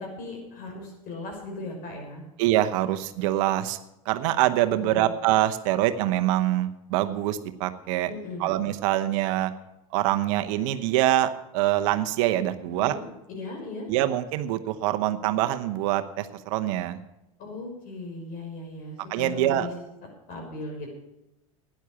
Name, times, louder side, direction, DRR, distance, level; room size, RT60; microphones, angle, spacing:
voice 1, 0.0-2.2 4.8-5.1 8.1-8.5 12.7-13.0 13.3-13.9 17.4-19.7 20.3-20.9, left 2 dB, 50° left, 1 dB, 6.2 m, -37 dB
voice 2, 2.4-3.8 4.0-8.1 8.4-9.5 9.9-13.0 13.9-17.0 19.1-19.7, right 14 dB, 65° right, 9 dB, 1.0 m, -25 dB
12.0 x 10.0 x 7.1 m, 0.90 s
hypercardioid pair, 95°, 18 cm